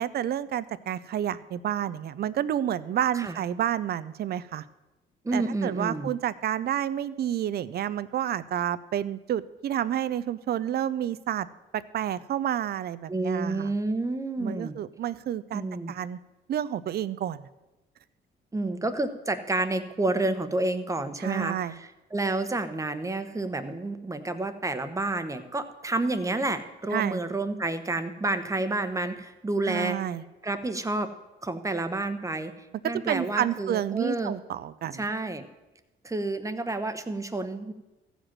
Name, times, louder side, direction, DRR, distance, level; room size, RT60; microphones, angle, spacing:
voice 1, 0.0-4.6 5.3-11.5 11.7-13.7 14.4-16.2 16.5-17.4 21.2-21.8 26.9-27.2 29.6-30.2 32.8-35.1, right 10 dB, 50° right, 16 dB, 0.5 m, -30 dB
voice 2, 5.2-6.1 13.1-14.7 15.5-15.9 18.5-30.0 30.4-31.1 31.4-32.5 32.8-34.4 34.9-35.5 36.0-37.7, right 2 dB, 15° right, 9 dB, 0.9 m, -29 dB
14.5 x 5.1 x 7.4 m, 1.0 s
cardioid pair, 90°, 20 cm